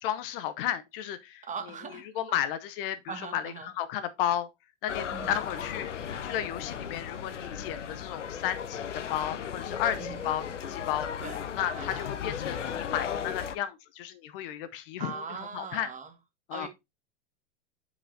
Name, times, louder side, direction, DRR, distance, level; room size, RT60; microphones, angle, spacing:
voice 1, 0.0-1.5 2.1-4.5 4.8-5.9 6.2-11.1 11.5-15.9 16.5-16.7, left 11 dB, 50° left, 0.7 m, -33 dB
voice 2, 1.4-2.1 3.1-3.7 5.1-5.3 10.0-10.5 11.2-11.4 11.7-12.1 15.0-16.1 16.5-16.7, right 6 dB, 20° right, 1.4 m, -40 dB
sound 1, 4.9-13.6, left 8 dB, 90° left, 0.7 m, -36 dB
8.6 x 4.9 x 2.7 m
hypercardioid pair, 95°, 35 cm